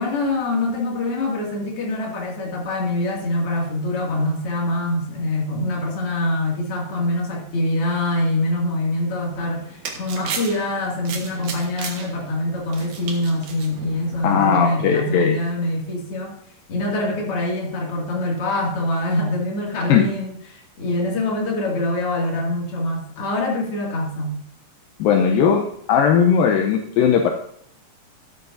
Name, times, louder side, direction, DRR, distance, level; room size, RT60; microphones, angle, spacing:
voice 1, 0.0-16.4 16.7-24.4, left 1 dB, 40° left, -2 dB, 2.6 m, -24 dB
sound 1, 9.3-14.5, right 5 dB, 70° right, 1.6 m, -35 dB
voice 2, 14.2-15.4 19.9-20.1 25.0-25.6 25.9-27.3, left 7 dB, 80° left, 3 dB, 2.0 m, -17 dB
12.5 x 9.5 x 2.6 m, 0.69 s
omnidirectional pair, 5.0 m